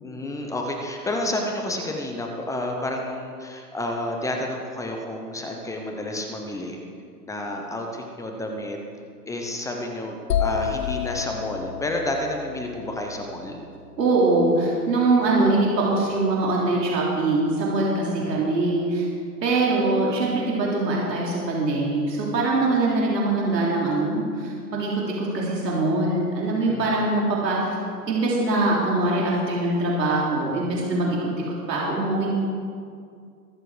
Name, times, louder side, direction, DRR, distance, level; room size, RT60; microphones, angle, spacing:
voice 1, 0.0-6.8 7.3-8.8 9.3-13.6 18.2-18.5 26.7-27.1, left 1 dB, 5° left, 2 dB, 0.7 m, -30 dB
sound 1, 10.3-14.1, left 9 dB, 80° left, 1.2 m, -30 dB
voice 2, 14.0-19.0 19.4-27.7 28.1-32.3, right 2 dB, 85° right, -4 dB, 3.4 m, -23 dB
22.0 x 7.5 x 4.9 m, 2.3 s
hypercardioid pair, 135°, 49 cm